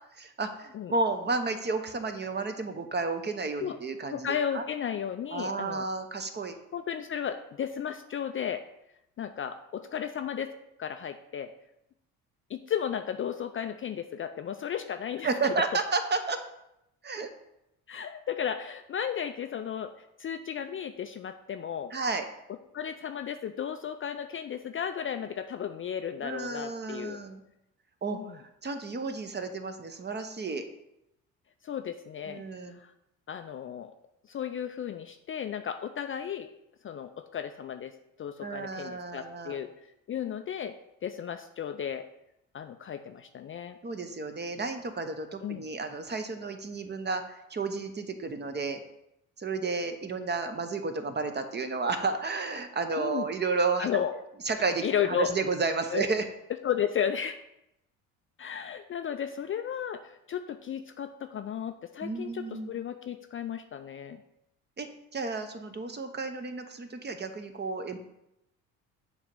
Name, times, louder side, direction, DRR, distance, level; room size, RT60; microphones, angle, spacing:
voice 1, 0.1-4.6 5.3-6.5 15.2-16.4 17.0-17.3 21.9-22.3 26.2-27.4 28.0-30.7 32.3-32.8 38.4-39.6 43.8-48.8 49.4-54.0 54.5-56.2 62.0-62.7 64.8-68.0, right 4 dB, 25° right, 7 dB, 0.9 m, -32 dB
voice 2, 4.1-5.9 6.7-8.6 9.2-10.5 10.8-11.5 12.5-15.3 17.9-21.9 22.7-27.2 28.1-28.4 31.6-32.4 32.7-32.9 33.3-33.9 34.3-36.5 36.8-40.8 41.0-42.1 42.5-43.8 45.4-45.7 53.0-53.3 53.8-54.1 54.8-55.3 55.9-56.1 56.6-57.4 58.4-64.2, left 8 dB, 35° left, 7 dB, 0.4 m, -34 dB
7.1 x 3.0 x 5.2 m, 0.84 s
hypercardioid pair, 60°, 39 cm